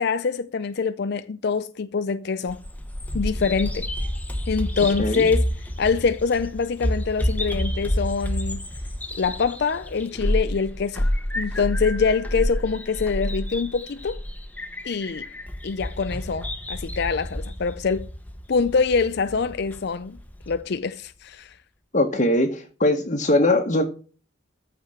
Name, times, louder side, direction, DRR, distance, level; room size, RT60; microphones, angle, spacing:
voice 1, 0.0-2.6 3.1-3.9 4.5-5.5 5.8-8.7 9.2-11.1 11.4-14.2 14.8-15.3 15.6-18.1 18.5-20.2 20.5-21.5, left 5 dB, 55° left, 0.5 m, -24 dB
Bird vocalization bird call bird song, 2.5-20.6, equal, 10° left, 1.0 m, -29 dB
voice 2, 21.9-23.8, left 1 dB, 40° left, 1.2 m, -21 dB
14.0 x 4.8 x 6.5 m
head